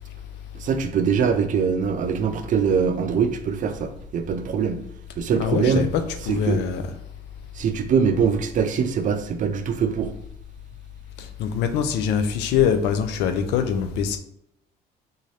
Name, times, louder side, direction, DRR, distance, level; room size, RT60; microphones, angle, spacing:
voice 1, 0.5-4.8 5.2-5.8 6.3-6.6 7.5-10.1, right 6 dB, 50° right, 0.5 m, -23 dB
voice 2, 5.4-6.8 11.4-14.2, left 7 dB, 85° left, 0.5 m, -23 dB
3.8 x 2.7 x 3.2 m
cardioid pair, 110°, 17 cm